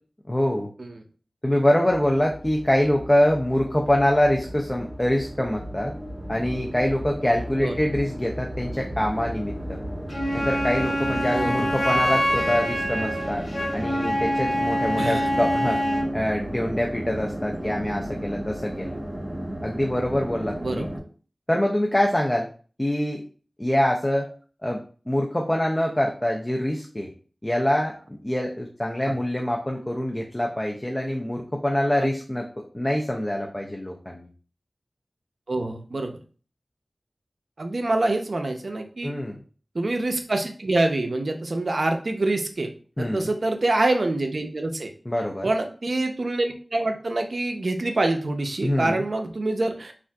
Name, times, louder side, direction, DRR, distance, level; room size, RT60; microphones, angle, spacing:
voice 1, 0.3-0.7 1.4-5.9 6.3-9.8 10.3-13.4 13.7-15.8 16.1-19.0 19.6-20.9 21.5-22.5 22.8-23.2 23.6-24.3 24.6-24.8 25.1-27.1 27.4-34.3 39.0-39.4 43.0-43.3 45.1-45.5 48.6-49.1, left 1 dB, 20° left, 0 dB, 0.4 m, -25 dB
sound 1, 1.8-21.0, right 1 dB, 25° right, 1.1 m, -34 dB
Wind instrument woodwind instrument, 10.1-16.1, equal, 55° left, 0.8 m, -25 dB
voice 2, 15.0-15.3 20.6-20.9 29.1-29.2 32.0-32.1 35.5-36.2 37.6-39.1 39.7-42.7 43.0-44.9 45.4-49.9, right 2 dB, 70° right, 5 dB, 0.4 m, -26 dB
3.6 x 2.4 x 2.2 m, 0.39 s
wide cardioid pair, 55°, 0 cm